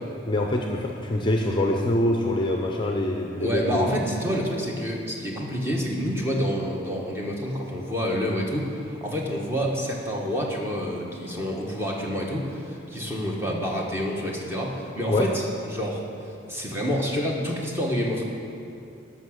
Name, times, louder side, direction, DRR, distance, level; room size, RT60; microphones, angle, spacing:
voice 1, 0.3-3.9 15.1-15.3, left 1 dB, 25° left, 1 dB, 0.6 m, -24 dB
voice 2, 3.4-18.2, equal, 10° right, -2 dB, 1.2 m, -28 dB
12.0 x 6.0 x 6.3 m, 2.6 s
head